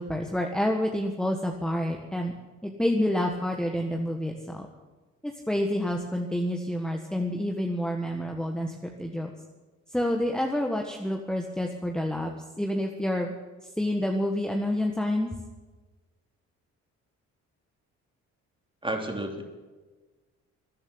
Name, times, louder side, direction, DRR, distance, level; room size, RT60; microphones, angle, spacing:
voice 1, 0.0-2.3 2.6-4.7 5.2-9.3 9.9-12.3 12.6-13.3 13.8-15.3, left 1 dB, ahead, 2 dB, 1.5 m, -28 dB
voice 2, 18.8-19.4, right 1 dB, 15° right, 3 dB, 3.2 m, -31 dB
13.0 x 11.0 x 9.7 m, 1.3 s
cardioid pair, 90°, 30 cm